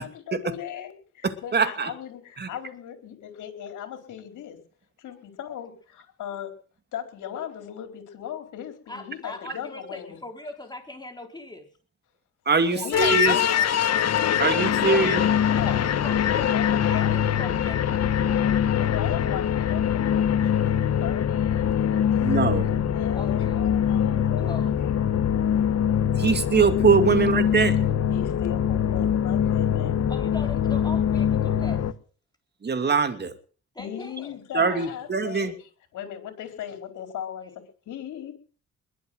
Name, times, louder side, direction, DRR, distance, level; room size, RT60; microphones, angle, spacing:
voice 1, 0.0-4.6 5.0-6.5 6.9-10.2 12.7-13.9 15.6-16.0 16.3-17.5 18.7-20.7 21.0-22.1 22.9-24.6 28.1-30.1 33.8-35.5 35.9-38.3, left 10 dB, 75° left, 6 dB, 4.4 m, -37 dB
voice 2, 1.2-1.9 2.4-2.5 12.5-13.4 14.4-15.2 22.2-22.7 26.2-27.9 32.6-33.4 34.5-35.5, right 5 dB, 35° right, 10 dB, 2.6 m, -22 dB
voice 3, 8.9-11.7 14.9-15.1 15.5-16.5 16.9-18.0 23.1-23.7 24.4-24.7 30.1-31.9 33.7-34.4, left 2 dB, 15° left, 3 dB, 4.0 m, -40 dB
sound 1, 12.9-31.9, left 9 dB, 55° left, 1.4 m, -23 dB
21.5 x 7.9 x 7.9 m, 0.41 s
cardioid pair, 90°, 30 cm